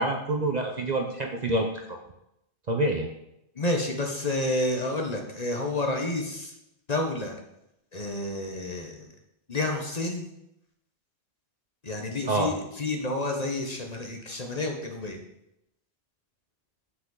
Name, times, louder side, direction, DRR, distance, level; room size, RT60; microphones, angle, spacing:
voice 1, 0.0-2.0 2.7-3.1 12.2-12.5, right 2 dB, 45° right, 3 dB, 0.7 m, -27 dB
voice 2, 3.5-6.5 6.9-7.4 7.9-9.1 9.5-10.3 11.8-15.2, left 2 dB, 35° left, 2 dB, 1.1 m, -30 dB
8.1 x 6.0 x 3.9 m, 0.83 s
omnidirectional pair, 1.2 m